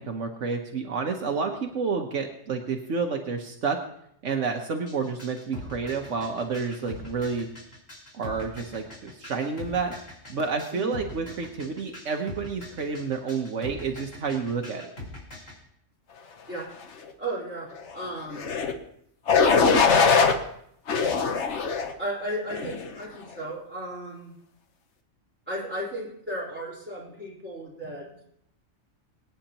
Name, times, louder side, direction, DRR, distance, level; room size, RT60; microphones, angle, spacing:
voice 1, 0.0-3.8 4.2-7.5 8.1-10.0 10.3-14.9, right 5 dB, 70° right, 3 dB, 1.3 m, -29 dB
sound 1, 4.9-15.6, left 2 dB, 80° left, 3.6 m, -42 dB
voice 2, 10.7-11.0 16.5-16.7 17.2-18.5 22.0-24.3 25.5-28.1, right 1 dB, 10° right, -6 dB, 4.0 m, -34 dB
sound 2, 18.4-18.7 19.3-20.3 20.9-21.9 22.5-22.9, left 5 dB, 65° left, 1.3 m, -21 dB
23.0 x 9.1 x 2.9 m, 0.71 s
omnidirectional pair, 1.3 m